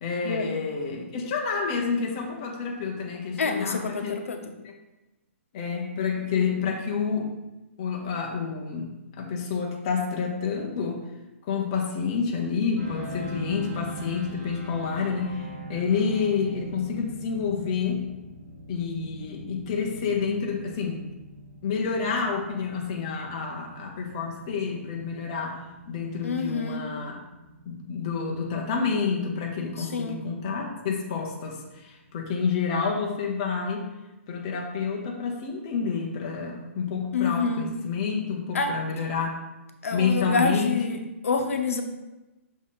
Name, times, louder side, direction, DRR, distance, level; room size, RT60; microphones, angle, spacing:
voice 1, 0.0-4.2 5.5-7.3 7.8-11.0 11.5-18.0 18.7-21.0 21.6-27.2 27.7-33.9 34.3-39.3 39.9-40.8, left 5 dB, 25° left, 0 dB, 0.6 m, -29 dB
voice 2, 3.4-4.4 26.2-26.9 29.8-30.2 37.1-37.7 38.5-38.7 39.8-41.0 41.2-41.8, left 4 dB, 75° left, 5 dB, 0.8 m, -27 dB
sound 1, 12.8-32.7, equal, 10° right, 1.9 m, -43 dB
6.1 x 4.0 x 3.8 m, 1.0 s
hypercardioid pair, 175°, 8 cm